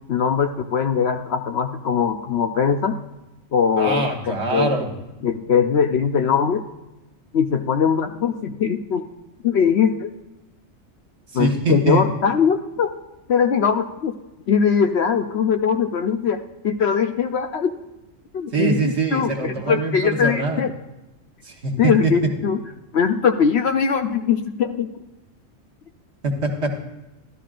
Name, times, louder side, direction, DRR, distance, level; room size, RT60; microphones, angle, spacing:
voice 1, 0.1-3.0 3.5-4.7 5.2-6.6 7.3-9.1 9.4-10.1 11.3-12.9 13.3-14.2 14.5-16.4 16.6-17.7 18.3-20.7 21.8-22.6 22.9-25.0, left 6 dB, 60° left, 6 dB, 0.8 m, -21 dB
voice 2, 3.8-4.9 11.3-12.0 18.5-20.6 21.4-22.1 26.2-26.8, right 3 dB, 55° right, 2 dB, 1.7 m, -23 dB
13.5 x 12.5 x 2.5 m, 0.98 s
omnidirectional pair, 1.4 m